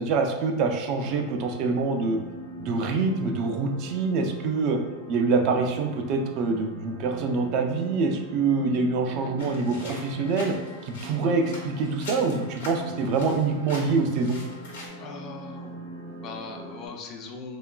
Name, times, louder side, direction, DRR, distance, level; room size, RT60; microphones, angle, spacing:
voice 1, 0.0-2.2 2.6-4.8 5.1-10.5 10.8-14.4, right 4 dB, 45° right, 4 dB, 0.3 m, -25 dB
sound 1, 1.0-16.9, right 1 dB, 85° right, 0.7 m, -41 dB
sound 2, 9.4-14.9, left 2 dB, 90° left, 1.0 m, -43 dB
voice 2, 15.0-17.6, left 4 dB, 40° left, 3 dB, 0.4 m, -40 dB
2.9 x 2.3 x 2.2 m, 1.1 s
supercardioid pair, 135°, 0 cm